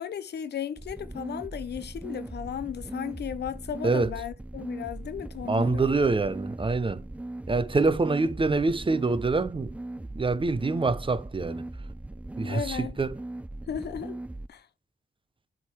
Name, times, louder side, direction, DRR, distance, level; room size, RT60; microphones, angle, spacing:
voice 1, 0.0-6.0 12.4-13.0 13.7-14.2 14.5-14.7, left 8 dB, 75° left, 0.7 m, -35 dB
sound 1, 0.8-14.5, right 1 dB, 10° right, 0.3 m, -39 dB
voice 2, 5.5-7.1 7.5-9.7 10.1-11.7 12.4-13.2, right 3 dB, 30° right, 0.7 m, -25 dB
8.0 x 3.6 x 4.4 m
cardioid pair, 65°, 17 cm